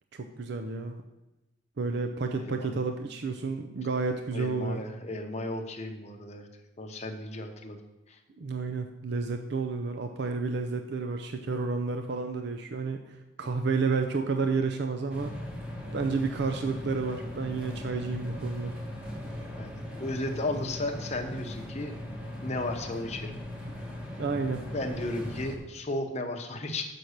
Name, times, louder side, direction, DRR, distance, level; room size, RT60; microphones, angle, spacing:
voice 1, 0.1-1.0 1.8-4.8 8.4-15.4 15.9-18.7 24.2-24.6, right 4 dB, 55° right, 5 dB, 0.5 m, -31 dB
voice 2, 2.3-2.8 4.3-6.5 6.8-7.8 8.1-8.2 19.6-21.9 22.4-23.3 24.7-26.9, left 2 dB, 35° left, 3 dB, 0.9 m, -34 dB
sound 1, 15.1-25.6, left 1 dB, 5° right, 1.2 m, -39 dB
6.8 x 5.9 x 6.5 m, 0.98 s
head